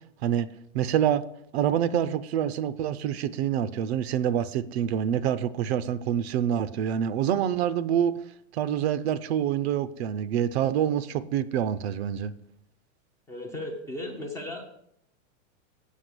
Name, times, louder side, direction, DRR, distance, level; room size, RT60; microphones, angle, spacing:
voice 1, 0.7-1.2 1.5-8.1 8.5-12.3, right 9 dB, 55° right, 15 dB, 0.5 m, -26 dB
voice 2, 13.3-14.7, left 1 dB, 5° left, 1 dB, 0.5 m, -36 dB
8.2 x 5.6 x 6.0 m, 0.72 s
supercardioid pair, 170°, 40 cm